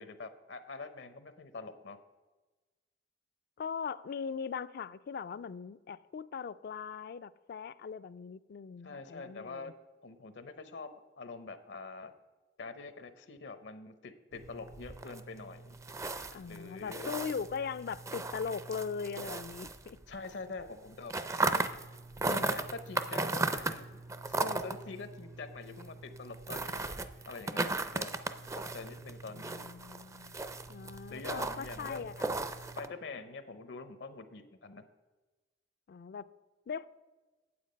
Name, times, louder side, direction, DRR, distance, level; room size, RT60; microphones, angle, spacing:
voice 1, 0.0-2.0 8.8-9.7 10.0-10.9 11.2-12.1 12.6-15.8 16.5-17.1 20.1-21.1 21.5-21.6 22.3-24.0 24.3-26.8 27.3-28.2 28.5-29.7 31.1-32.2 32.8-34.9, left 4 dB, 75° left, 11 dB, 0.7 m, -45 dB
voice 2, 3.6-9.7 16.3-20.0 29.3-30.4 30.7-32.4 35.9-36.3 36.7-36.9, left 6 dB, 55° left, 16 dB, 0.3 m, -40 dB
sound 1, 14.3-20.3 20.6-32.9, right 3 dB, 15° right, 0.4 m, -37 dB
8.6 x 7.8 x 5.2 m, 1.2 s
head